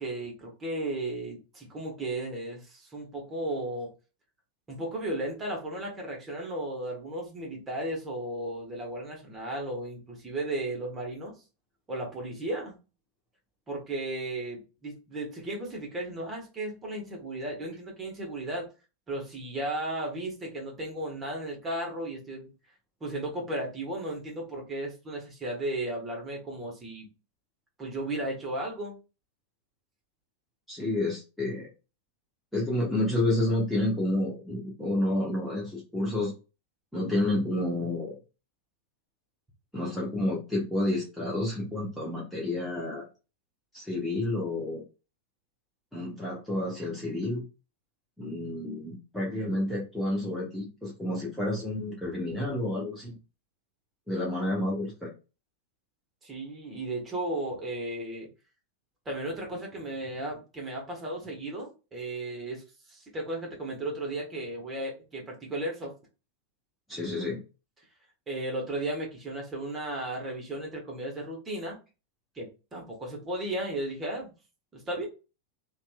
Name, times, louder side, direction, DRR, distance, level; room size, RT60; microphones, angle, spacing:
voice 1, 0.0-3.9 4.7-11.3 11.9-12.8 13.7-18.6 19.1-22.5 23.0-27.1 27.8-29.0 56.2-58.3 59.0-62.6 62.9-65.9 68.3-71.8 72.3-74.3 74.7-75.1, right 1 dB, 20° right, -1 dB, 1.1 m, -35 dB
voice 2, 30.7-31.7 32.5-36.3 36.9-38.2 39.7-43.1 43.7-44.8 45.9-47.4 48.2-53.2 54.1-55.1 66.9-67.4, left 1 dB, ahead, -6 dB, 0.8 m, -30 dB
2.8 x 2.3 x 2.2 m, 0.31 s
figure-of-eight pair, 90°, 0 cm